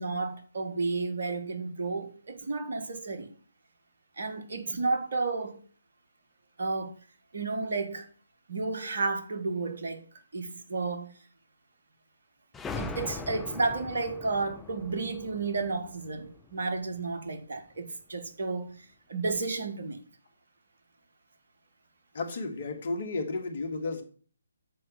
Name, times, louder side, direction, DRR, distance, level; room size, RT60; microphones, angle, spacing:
voice 1, 0.0-3.3 4.2-5.6 6.6-6.9 7.3-8.1 8.5-10.0 10.3-11.1 12.7-18.8 19.1-20.0, right 3 dB, 55° right, 1.5 m, -32 dB
sound 1, 12.5-17.0, left 4 dB, 10° left, 0.6 m, -41 dB
voice 2, 22.1-24.0, left 3 dB, 45° left, 1.8 m, -33 dB
7.7 x 4.3 x 7.0 m
figure-of-eight pair, 145°, 0 cm